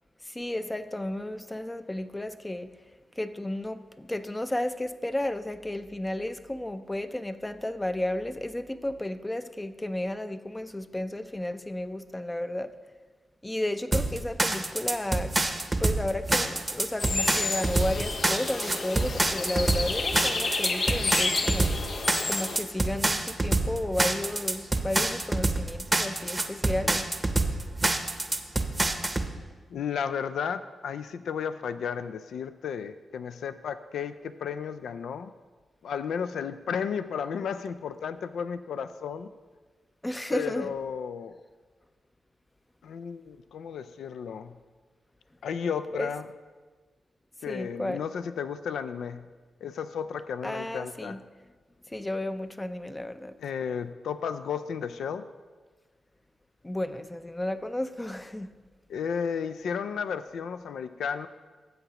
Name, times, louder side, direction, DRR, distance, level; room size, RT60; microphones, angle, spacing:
voice 1, 0.2-2.7 3.2-12.7 13.4-15.4 15.8-21.7 22.3-27.1 40.0-40.8 45.9-46.1 47.5-48.0 50.4-51.2 51.9-53.4 56.6-58.5, left 1 dB, 15° left, 11 dB, 0.5 m, -33 dB
sound 1, 13.9-29.3, right 2 dB, 25° right, 0.7 m, -26 dB
sound 2, 17.0-22.6, left 3 dB, 60° left, 0.7 m, -30 dB
voice 2, 29.7-35.3 35.8-39.3 40.3-41.3 42.8-44.5 45.4-46.2 47.4-49.2 49.6-51.2 53.4-55.2 58.9-61.3, left 7 dB, 90° left, 11 dB, 0.3 m, -33 dB
13.0 x 7.9 x 2.9 m, 1.4 s
cardioid pair, 75°, 0 cm